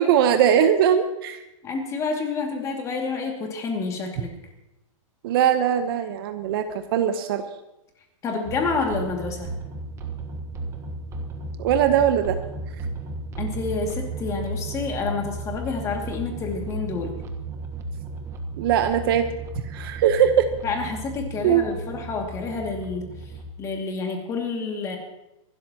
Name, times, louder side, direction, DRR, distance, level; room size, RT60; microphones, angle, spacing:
voice 1, 0.0-1.4 5.2-7.4 11.6-12.4 18.6-19.3 19.7-20.5 21.4-21.6, right 9 dB, 45° right, 8 dB, 1.0 m, -20 dB
voice 2, 1.6-4.3 8.2-9.5 13.4-17.2 20.6-23.1 23.6-25.0, left 4 dB, 20° left, 2 dB, 2.3 m, -28 dB
sound 1, 8.5-23.5, right 2 dB, 15° right, 1.3 m, -34 dB
26.0 x 12.5 x 3.0 m, 0.90 s
hypercardioid pair, 160°, 17 cm